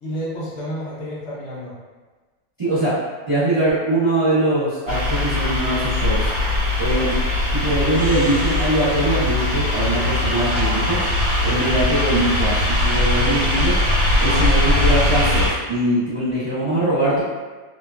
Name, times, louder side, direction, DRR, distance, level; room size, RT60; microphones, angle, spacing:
voice 1, 0.0-1.7 6.9-7.0 11.4-11.6, equal, 50° left, -7 dB, 0.9 m, -31 dB
voice 2, 2.6-2.9 3.3-6.2 6.8-7.2 7.5-11.0 11.4-13.7 14.2-17.2, right 1 dB, 40° right, -13 dB, 0.4 m, -22 dB
sound 1, 4.9-15.5, left 1 dB, 55° right, 1.3 m, -20 dB
2.9 x 2.2 x 2.3 m, 1.3 s
omnidirectional pair, 1.9 m